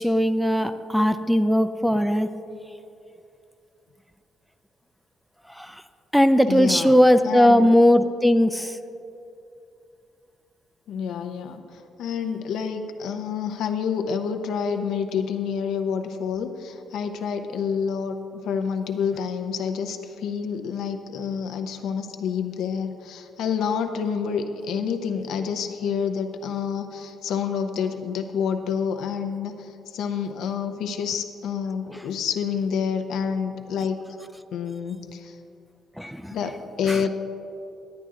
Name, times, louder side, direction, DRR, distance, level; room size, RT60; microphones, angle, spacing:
voice 1, 0.0-2.3 5.6-5.7 6.1-8.8 36.0-36.4 36.9-37.0, equal, ahead, 10 dB, 0.4 m, -19 dB
voice 2, 6.5-6.9 7.2-7.7 10.9-34.2 34.5-35.4 36.3-37.1, left 6 dB, 80° left, 6 dB, 0.7 m, -28 dB
10.5 x 9.1 x 3.7 m, 2.7 s
cardioid pair, 90°, 0 cm